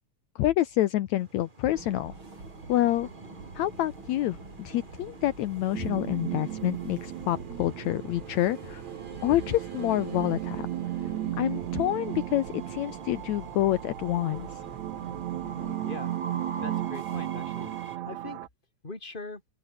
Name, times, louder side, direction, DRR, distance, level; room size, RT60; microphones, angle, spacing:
voice 1, 0.4-2.1 2.7-3.1 3.6-8.8 9.2-10.7 11.4-14.5, left 14 dB, 75° left, 2.1 m, -27 dB
Train, 1.2-18.0, right 3 dB, 20° right, 1.9 m, -47 dB
sound 1, 1.6-15.7, right 3 dB, 40° right, 6.4 m, -46 dB
sound 2, 5.7-18.5, right 14 dB, 75° right, 2.2 m, -35 dB
voice 2, 15.4-16.1 16.6-18.4 18.8-19.4, left 3 dB, 15° left, 3.8 m, -41 dB
open air
omnidirectional pair, 3.4 m